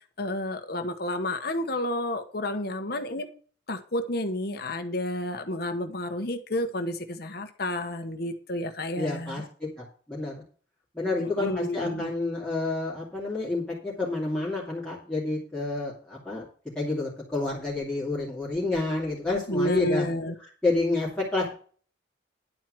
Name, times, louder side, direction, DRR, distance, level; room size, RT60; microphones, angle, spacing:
voice 1, 0.2-3.3 3.7-9.4 11.2-12.1 19.5-20.3, left 1 dB, 55° left, 7 dB, 1.2 m, -30 dB
voice 2, 9.0-10.3 10.9-16.4 16.7-20.0 20.6-21.5, left 2 dB, 5° left, -7 dB, 2.7 m, -29 dB
11.0 x 4.5 x 7.7 m, 0.42 s
head